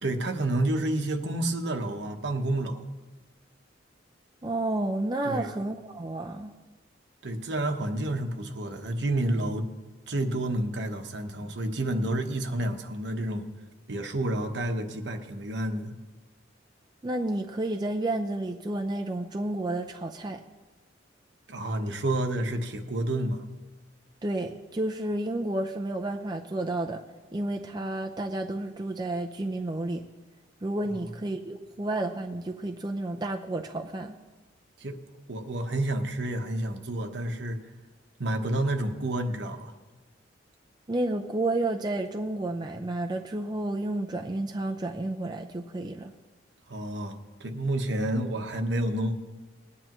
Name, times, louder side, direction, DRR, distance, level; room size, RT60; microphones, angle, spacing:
voice 1, 0.0-2.9 5.2-5.5 7.2-9.7 10.1-13.5 13.9-15.9 21.5-23.4 30.9-31.0 34.8-35.0 35.3-37.6 38.2-39.7 46.7-49.3, right 1 dB, 65° right, 5 dB, 1.1 m, -29 dB
voice 2, 4.4-6.5 17.0-20.4 24.2-27.0 27.3-30.0 30.6-34.2 40.9-46.1, right 2 dB, 20° right, 3 dB, 0.5 m, -31 dB
20.0 x 9.8 x 3.0 m, 1.2 s
head